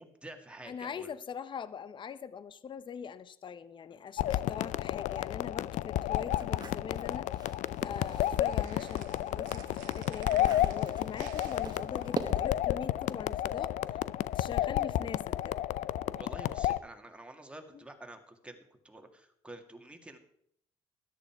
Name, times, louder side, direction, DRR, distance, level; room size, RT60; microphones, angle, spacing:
voice 1, 0.0-1.1 16.2-20.2, right 1 dB, 10° right, 4 dB, 2.1 m, -49 dB
voice 2, 0.7-7.3 7.8-13.7 14.3-15.6, left 7 dB, 35° left, 15 dB, 0.7 m, -42 dB
sound 1, 4.2-16.8, left 13 dB, 65° left, 0.5 m, -31 dB
sound 2, 6.2-8.5 8.9-12.7, right 5 dB, 30° right, 1.2 m, -44 dB
sound 3, 7.7-12.8, right 12 dB, 85° right, 1.1 m, -53 dB
13.5 x 11.0 x 4.6 m, 0.69 s
supercardioid pair, 90°, 13 cm